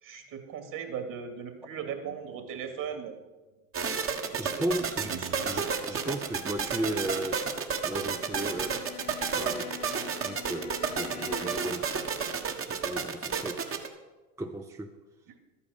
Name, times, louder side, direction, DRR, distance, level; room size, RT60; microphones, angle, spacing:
voice 1, 0.0-3.2 4.2-4.4 5.1-5.5, right 7 dB, 45° right, 5 dB, 2.6 m, -38 dB
sound 1, 3.7-13.9, right 6 dB, 30° right, 1.5 m, -31 dB
voice 2, 4.4-5.2 5.4-7.5 7.8-8.9 9.3-9.7 10.2-11.9 12.7-13.7 14.4-15.0, right 1 dB, 5° right, 5 dB, 0.6 m, -35 dB
Bowed string instrument, 7.8-11.9, left 13 dB, 55° left, 1.2 m, -45 dB
13.0 x 8.8 x 6.7 m, 1.2 s
hypercardioid pair, 90°, 44 cm